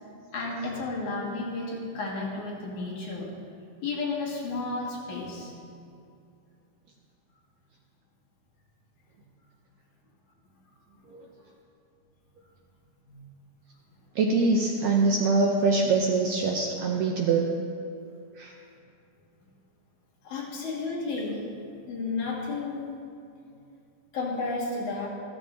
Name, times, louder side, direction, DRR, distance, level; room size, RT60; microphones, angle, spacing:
voice 1, 0.3-3.3 3.8-5.5 13.1-13.2 20.2-21.4 21.9-22.9 24.1-25.1, left 3 dB, 65° left, -5 dB, 3.3 m, -32 dB
voice 2, 14.1-17.5 18.4-18.5, right 3 dB, 75° right, 0 dB, 1.6 m, -24 dB
14.5 x 13.5 x 2.8 m, 2.5 s
omnidirectional pair, 3.8 m